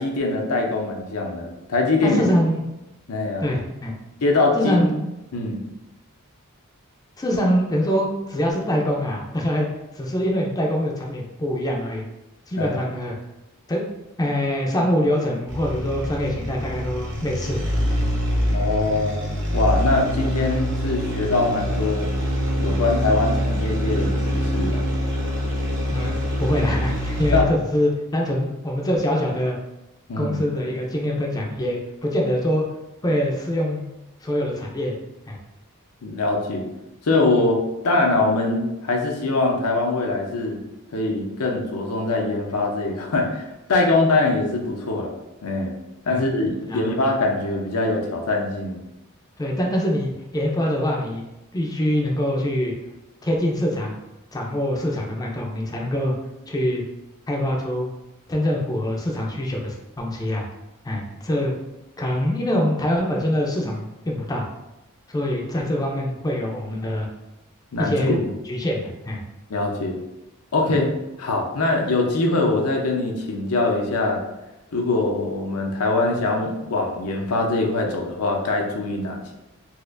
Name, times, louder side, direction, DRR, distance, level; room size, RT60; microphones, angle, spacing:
voice 1, 0.0-2.2 3.1-3.5 4.2-4.9 5.3-5.6 12.6-12.8 18.5-22.1 22.6-24.8 27.3-27.5 30.1-30.4 36.0-36.7 37.0-40.6 40.9-45.1 45.4-45.7 46.1-48.8 67.7-68.2 69.5-70.0 70.5-70.9 71.2-74.2 74.7-79.3, left 2 dB, 85° left, 1 dB, 0.7 m, -23 dB
voice 2, 2.0-2.6 3.4-4.0 4.5-5.0 7.2-9.7 10.0-12.1 12.5-13.2 13.7-13.8 14.2-17.7 18.0-18.1 25.9-29.6 30.2-32.7 33.0-33.8 34.2-35.0 35.3-35.4 46.1-46.2 46.7-46.8 49.4-51.2 51.5-52.7 53.2-53.9 54.3-56.1 56.5-56.8 57.3-57.9 58.3-60.5 60.8-61.5 62.0-64.5 65.1-67.1 67.8-68.2 68.4-69.2, equal, 15° left, -1 dB, 0.4 m, -24 dB
sound 1, 15.5-27.6, equal, 60° right, 0.9 m, -24 dB
4.1 x 2.4 x 2.5 m, 0.97 s
head